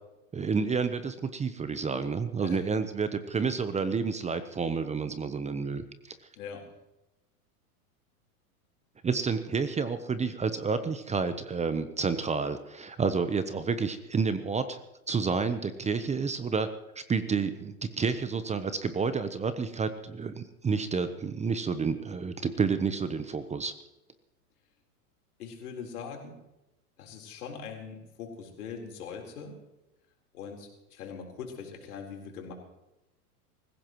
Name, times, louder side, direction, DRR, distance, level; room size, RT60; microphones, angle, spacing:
voice 1, 0.3-6.1 9.0-14.8 15.1-16.7 17.0-23.8, right 5 dB, 15° right, 11 dB, 0.8 m, -30 dB
voice 2, 6.4-6.7 25.4-26.4 27.0-29.6 30.3-32.5, left 6 dB, 75° left, 1 dB, 4.2 m, -41 dB
24.5 x 15.5 x 3.1 m, 0.94 s
hypercardioid pair, 110°, 45 cm